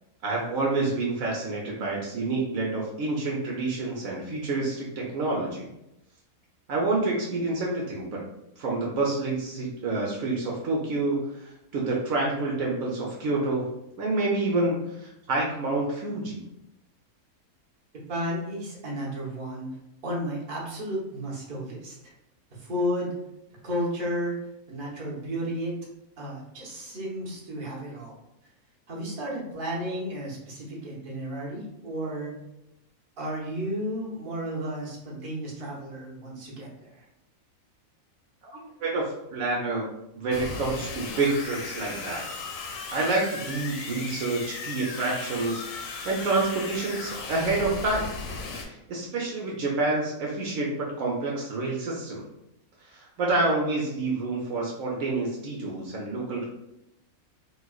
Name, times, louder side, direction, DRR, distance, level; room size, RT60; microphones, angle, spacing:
voice 1, 0.2-5.7 6.7-8.2 8.6-13.7 14.0-16.4 38.5-39.0 39.3-39.8 40.1-42.2 42.9-48.1 48.5-52.2 52.8-56.5, right 2 dB, 70° right, -3 dB, 1.0 m, -28 dB
voice 2, 18.1-19.7 20.0-22.1 22.5-23.1 23.6-24.4 24.7-25.8 26.2-28.1 28.9-32.3 33.2-37.0, equal, 40° right, -4 dB, 1.0 m, -33 dB
sound 1, 40.3-48.6, left 4 dB, 70° left, 1.0 m, -37 dB
4.2 x 2.3 x 2.3 m, 0.85 s
omnidirectional pair, 1.5 m